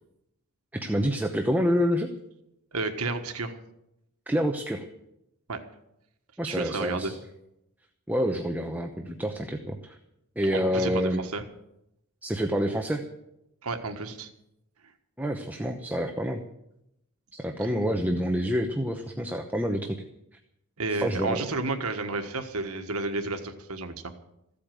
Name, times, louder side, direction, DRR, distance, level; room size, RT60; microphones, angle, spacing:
voice 1, 0.7-2.1 4.3-4.9 6.4-7.2 8.1-10.0 10.4-11.2 12.2-13.0 15.2-16.4 17.3-20.0 20.9-21.5, equal, 10° right, 4 dB, 0.9 m, -27 dB
voice 2, 2.7-3.6 5.5-5.6 6.4-7.1 10.5-11.4 13.6-14.3 20.8-24.1, right 3 dB, 85° right, 6 dB, 1.6 m, -31 dB
15.5 x 8.6 x 9.1 m, 0.83 s
head